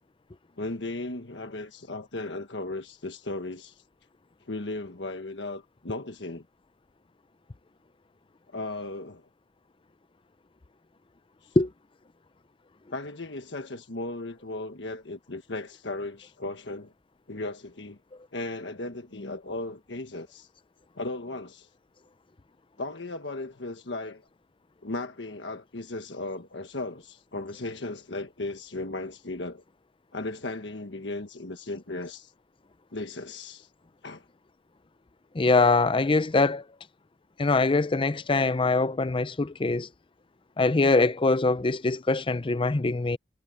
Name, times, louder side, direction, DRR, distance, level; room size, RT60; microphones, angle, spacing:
voice 1, 0.6-3.8 4.5-6.4 8.5-9.2 11.4-11.5 12.9-16.9 17.3-18.0 18.3-20.5 21.0-21.7 22.8-24.2 24.8-29.6 30.1-32.3 32.9-33.7 34.0-34.2, left 2 dB, 75° left, 1.5 m, -36 dB
voice 2, 35.3-36.6 37.4-39.9 40.6-43.2, left 3 dB, 30° left, 0.6 m, -23 dB
head